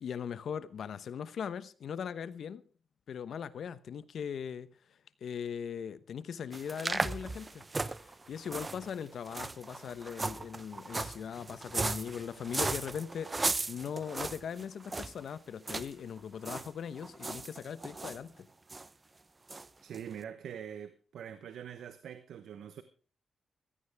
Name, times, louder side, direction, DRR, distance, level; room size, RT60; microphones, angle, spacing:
voice 1, 0.0-2.6 3.1-4.7 5.2-7.6 8.0-18.5, left 7 dB, 70° left, 1.0 m, -40 dB
sound 1, 6.5-15.2 15.7-15.9 16.2-16.7 17.0-18.2 18.7-18.9 19.5-19.7 19.9-20.0, right 3 dB, 30° right, 0.8 m, -36 dB
voice 2, 19.8-22.8, right 8 dB, 80° right, 0.9 m, -44 dB
15.5 x 15.0 x 3.5 m
cardioid pair, 70°, 0 cm